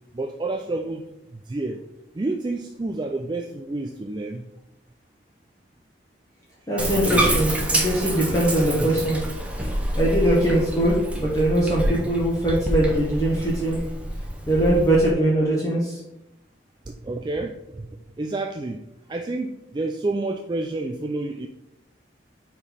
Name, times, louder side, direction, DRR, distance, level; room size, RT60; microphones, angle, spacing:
voice 1, 0.1-1.1 1.5-1.8 2.1-4.4 16.9-17.9 18.2-21.5, right 2 dB, 25° right, 4 dB, 0.3 m, -29 dB
voice 2, 6.7-9.2 9.9-13.8 14.5-16.0, right 1 dB, 20° left, -5 dB, 1.2 m, -21 dB
Bathtub (filling or washing), 6.8-15.1, right 1 dB, 5° right, 0.8 m, -27 dB
5.0 x 4.4 x 5.4 m, 0.87 s
head